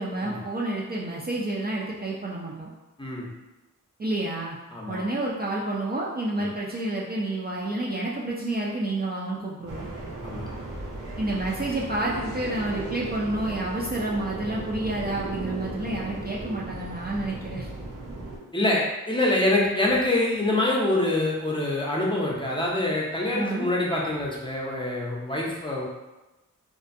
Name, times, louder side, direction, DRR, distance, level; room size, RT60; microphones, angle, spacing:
voice 1, 0.0-2.7 4.0-4.6 4.9-9.9 11.2-17.7 23.3-23.7, right 2 dB, 30° right, -4 dB, 0.4 m, -29 dB
voice 2, 4.7-5.1 10.2-10.5 18.5-25.8, left 1 dB, 15° left, -4 dB, 0.6 m, -25 dB
sound 1, 9.7-18.4, right 2 dB, 75° right, 0.7 m, -36 dB
2.5 x 2.2 x 2.5 m, 1.1 s
cardioid pair, 60°, 32 cm